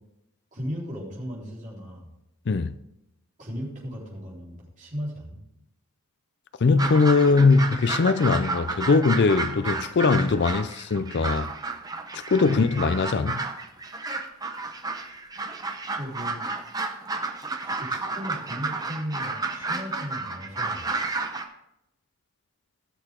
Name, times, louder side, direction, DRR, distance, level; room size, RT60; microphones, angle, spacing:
voice 1, 0.5-2.1 3.4-5.4 12.4-12.7 15.9-16.4 17.6-20.9, equal, 35° right, 3.7 m, -36 dB
voice 2, 6.6-11.5 12.1-13.4, left 4 dB, 50° left, 0.4 m, -21 dB
sound 1, 6.8-21.4, right 3 dB, 15° right, 0.8 m, -32 dB
17.5 x 6.7 x 3.7 m
head